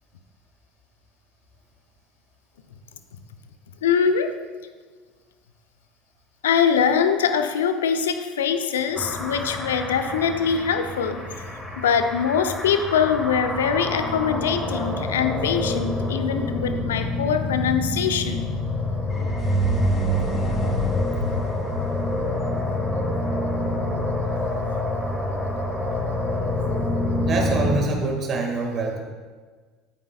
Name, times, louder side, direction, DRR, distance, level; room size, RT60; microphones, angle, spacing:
voice 1, 3.8-4.3 6.4-11.4 11.8-18.5, left 7 dB, 80° left, 8 dB, 0.6 m, -23 dB
sound 1, 8.9-27.8, left 2 dB, 10° left, 2.7 m, -27 dB
sound 2, 19.1-23.0, right 1 dB, 40° left, 2.6 m, -25 dB
voice 2, 27.2-29.0, right 3 dB, 45° right, 1 dB, 1.9 m, -26 dB
10.0 x 8.8 x 2.4 m, 1.5 s
hypercardioid pair, 70°, 0 cm